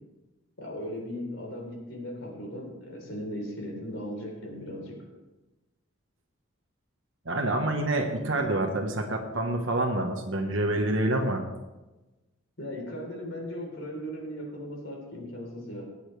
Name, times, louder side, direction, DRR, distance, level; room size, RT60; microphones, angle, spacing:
voice 1, 0.6-5.0 12.6-15.8, equal, 60° left, 0 dB, 3.9 m, -37 dB
voice 2, 7.2-11.4, right 1 dB, 65° right, 2 dB, 1.3 m, -27 dB
20.5 x 8.6 x 3.3 m, 1.1 s
head